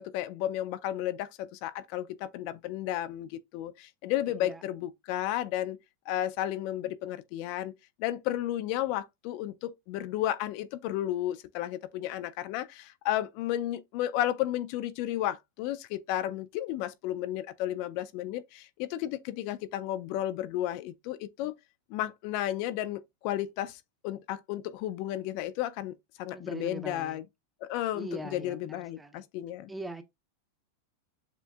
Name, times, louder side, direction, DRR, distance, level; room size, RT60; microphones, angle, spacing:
voice 1, 0.0-5.8 6.1-7.7 8.0-21.5 21.9-27.2 27.6-29.7, left 13 dB, 55° left, 0.4 m, -33 dB
voice 2, 26.3-27.2 27.9-29.3 29.7-30.0, right 1 dB, 5° right, 0.6 m, -41 dB
7.0 x 2.5 x 2.3 m
supercardioid pair, 130°, 0 cm